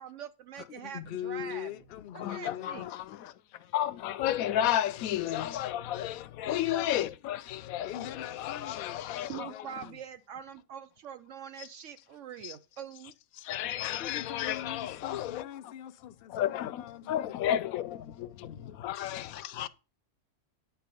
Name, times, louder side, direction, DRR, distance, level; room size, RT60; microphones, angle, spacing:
voice 1, 0.0-1.7 2.3-2.8 9.3-13.1, right 9 dB, 70° right, 0.8 m, -43 dB
voice 2, 0.6-2.8 7.8-10.0 14.0-17.3, left 10 dB, 65° left, 0.6 m, -42 dB
voice 3, 2.2-9.9 11.6-11.7 12.4-12.6 13.3-15.7 16.3-19.7, left 11 dB, 80° left, 1.0 m, -33 dB
9.4 x 3.4 x 6.7 m
omnidirectional pair, 1.5 m